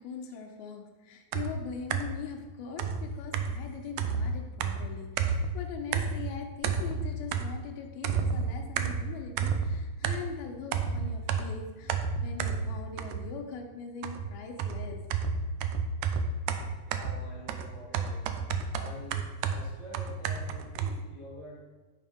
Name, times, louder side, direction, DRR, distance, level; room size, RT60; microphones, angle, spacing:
voice 1, 0.0-15.2, left 6 dB, 85° left, 3 dB, 3.0 m, -41 dB
sound 1, 1.3-2.3 2.8-5.6 5.9-6.4 6.6-7.7 8.0-10.4 10.7-13.4 14.0-21.0, right 5 dB, 85° right, 1.7 m, -31 dB
voice 2, 16.8-18.3 18.7-21.6, equal, 15° left, -2 dB, 1.3 m, -47 dB
9.4 x 5.2 x 5.2 m, 1.2 s
omnidirectional pair, 4.2 m